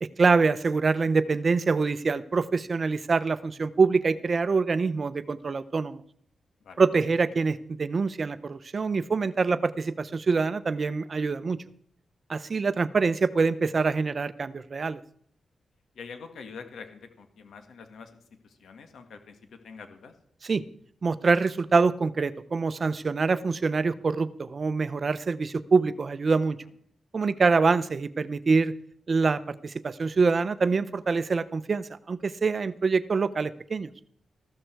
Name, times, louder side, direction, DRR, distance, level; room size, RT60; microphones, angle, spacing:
voice 1, 0.0-6.0 6.8-11.6 12.3-15.0 20.4-20.6 21.0-26.6 27.1-28.7 29.1-33.9, right 4 dB, 35° right, 15 dB, 0.6 m, -25 dB
voice 2, 16.0-20.1, left 5 dB, 85° left, 7 dB, 2.1 m, -45 dB
14.5 x 13.0 x 4.6 m, 0.63 s
wide cardioid pair, 180°, 0 cm